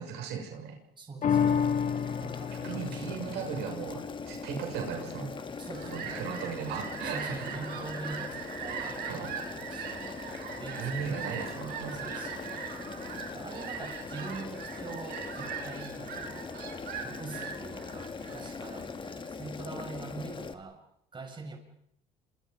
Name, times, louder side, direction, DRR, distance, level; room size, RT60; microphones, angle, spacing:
voice 1, 0.0-0.8 2.6-5.3 5.8-7.5 9.1-9.3 10.8-12.0, right 6 dB, 85° right, 3 dB, 6.7 m, -37 dB
voice 2, 1.0-1.8 2.2-3.2 5.6-6.3 7.0-10.2 10.6-12.6 12.9-13.0 13.3-16.5 17.0-20.8 21.1-21.6, right 3 dB, 30° right, 4 dB, 6.8 m, -44 dB
sound 1, 1.2-7.9 8.3-8.4, left 7 dB, 50° left, 2.3 m, -33 dB
Boiling, 1.3-20.5, left 4 dB, 30° left, 2.2 m, -41 dB
Fowl, 5.3-19.3, right 7 dB, 70° right, 7.4 m, -41 dB
29.0 x 27.0 x 5.4 m, 0.71 s
cardioid pair, 110°, 17 cm